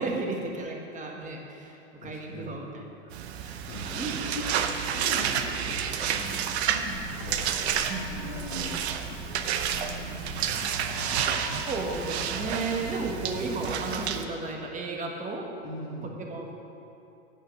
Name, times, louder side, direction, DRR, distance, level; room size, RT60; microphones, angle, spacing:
voice 1, 0.0-3.1 3.4-3.5 3.8-4.2 7.9-8.7 11.6-15.4 16.2-16.5, right 3 dB, 20° right, 1 dB, 1.4 m, -34 dB
voice 2, 1.6-2.6 3.4-8.8 9.5-11.2 12.9-13.4 15.6-16.2, left 1 dB, 50° left, -1 dB, 1.9 m, -42 dB
sound 1, 3.1-14.2, right 8 dB, 65° right, 0.7 m, -30 dB
sound 2, 6.9-13.0, left 8 dB, 25° left, 0.4 m, -44 dB
8.9 x 5.4 x 6.9 m, 2.8 s
hypercardioid pair, 100°, 35 cm